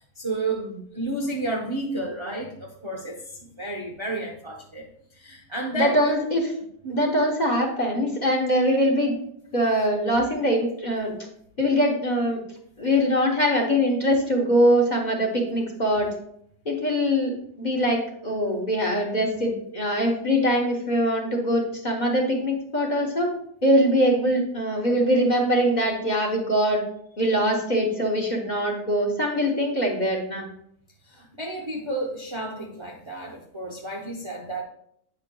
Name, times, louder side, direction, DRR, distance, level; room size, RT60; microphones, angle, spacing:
voice 1, 0.2-0.7 0.9-4.8 5.1-6.1 6.8-7.1 31.1-34.6, right 2 dB, 35° right, -1 dB, 0.4 m, -31 dB
voice 2, 5.7-6.5 6.9-9.2 9.5-11.1 11.6-12.4 12.8-16.1 16.6-17.3 17.6-23.3 23.6-26.8 27.2-30.5, equal, 30° left, -1 dB, 1.0 m, -23 dB
8.7 x 5.7 x 2.2 m, 0.69 s
omnidirectional pair, 1.7 m